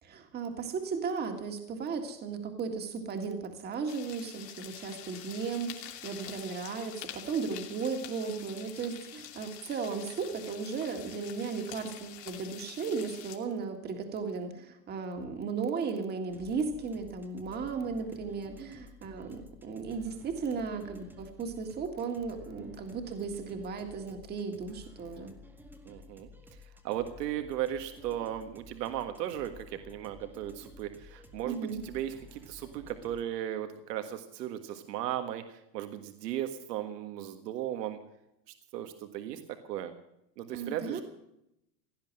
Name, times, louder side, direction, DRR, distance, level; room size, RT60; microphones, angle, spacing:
voice 1, 0.0-25.3 31.5-31.8 40.5-41.0, right 5 dB, 20° right, 5 dB, 1.9 m, -35 dB
sound 1, 3.9-13.4, left 11 dB, 70° left, 3.0 m, -46 dB
sound 2, 16.3-33.2, left 3 dB, 5° right, 1.1 m, -53 dB
voice 2, 25.9-26.3 26.8-38.0 38.7-39.4 39.7-39.9 40.4-41.0, right 11 dB, 70° right, 7 dB, 1.7 m, -36 dB
17.0 x 11.0 x 7.6 m, 0.81 s
supercardioid pair, 160°, 49 cm